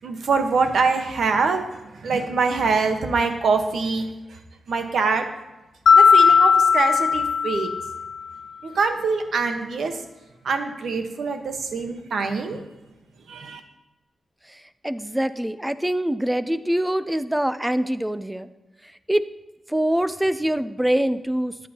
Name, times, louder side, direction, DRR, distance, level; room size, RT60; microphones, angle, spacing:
voice 1, 0.0-1.6 2.0-4.1 4.7-5.2 5.9-7.7 8.6-9.9 10.4-12.6 13.3-13.6, right 4 dB, 80° right, 6 dB, 1.2 m, -24 dB
Mallet percussion, 5.9-8.2, left 6 dB, 85° left, 0.3 m, -17 dB
voice 2, 14.8-18.5 19.1-19.2 19.7-21.7, right 1 dB, 10° right, 13 dB, 0.5 m, -24 dB
14.0 x 9.3 x 2.9 m, 1.1 s
wide cardioid pair, 100°, 0 cm